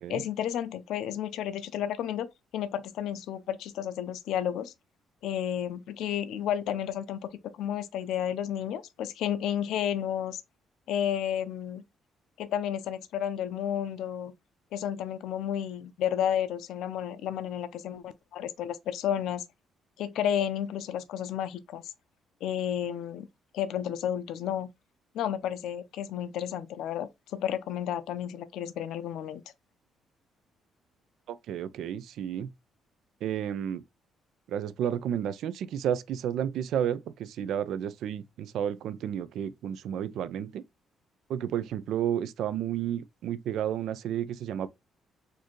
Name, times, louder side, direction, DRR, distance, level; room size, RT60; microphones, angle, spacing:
voice 1, 0.1-2.3 2.5-4.7 5.2-7.2 7.5-10.4 10.9-11.8 12.4-14.3 14.7-19.4 20.0-21.9 22.4-23.3 23.5-24.7 25.1-29.4, left 10 dB, 80° left, 0.4 m, -32 dB
voice 2, 31.3-32.5 33.2-33.8 34.5-40.6 41.3-44.7, right 9 dB, 75° right, 0.3 m, -31 dB
4.2 x 2.6 x 3.0 m
cardioid pair, 130°, 0 cm